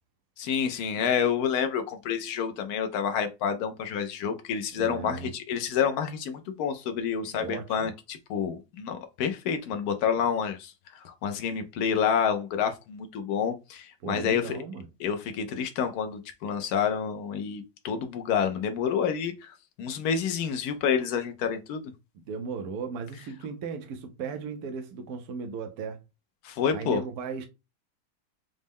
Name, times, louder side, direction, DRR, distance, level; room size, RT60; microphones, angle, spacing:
voice 1, 0.4-14.6 15.0-21.8 26.4-27.0, left 7 dB, 90° left, 0.8 m, -28 dB
voice 2, 4.7-5.3 7.3-7.9 14.0-14.8 22.3-26.0 26.7-27.5, right 5 dB, 75° right, 0.9 m, -36 dB
5.1 x 2.0 x 3.5 m
omnidirectional pair, 2.2 m